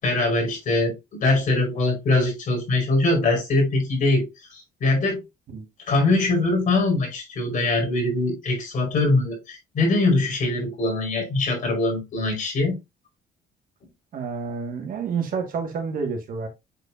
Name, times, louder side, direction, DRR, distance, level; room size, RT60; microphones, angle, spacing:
voice 1, 0.0-4.2 4.5-5.2 5.9-12.8, left 2 dB, 50° left, 4.9 m, -22 dB
voice 2, 14.1-16.5, right 5 dB, 55° right, 2.0 m, -29 dB
8.1 x 4.6 x 2.7 m
cardioid pair, 110°, 17 cm